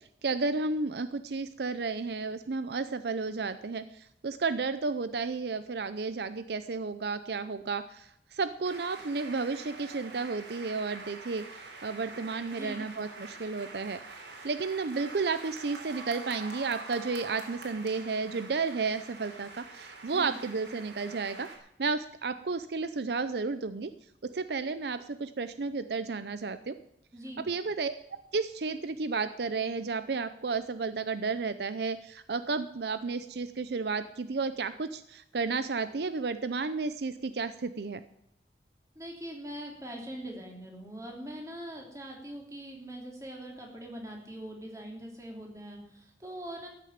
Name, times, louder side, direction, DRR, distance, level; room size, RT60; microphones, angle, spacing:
voice 1, 0.2-11.4 11.8-14.0 14.4-21.5 21.8-23.9 24.2-26.8 27.5-38.0, right 4 dB, 70° right, 12 dB, 0.6 m, -32 dB
sound 1, 8.6-21.6, right 3 dB, 90° right, 3.5 m, -46 dB
voice 2, 12.5-12.9 20.1-20.4 27.1-27.4 38.9-46.7, right 1 dB, 20° right, 0 dB, 3.1 m, -42 dB
13.5 x 6.7 x 9.5 m, 0.77 s
head